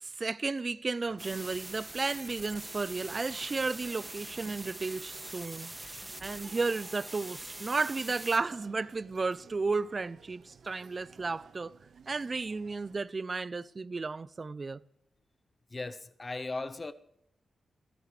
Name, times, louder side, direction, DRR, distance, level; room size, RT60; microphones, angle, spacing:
voice 1, 0.0-5.7 6.2-11.7 12.1-14.8, right 3 dB, 45° right, 0.6 m, -33 dB
sound 1, 1.0-13.0, right 6 dB, 75° right, 0.8 m, -57 dB
sound 2, 1.2-8.4, right 1 dB, 20° right, 2.1 m, -44 dB
voice 2, 15.7-16.9, left 3 dB, 35° left, 0.8 m, -37 dB
25.5 x 17.0 x 3.3 m
cardioid pair, 55°, 0 cm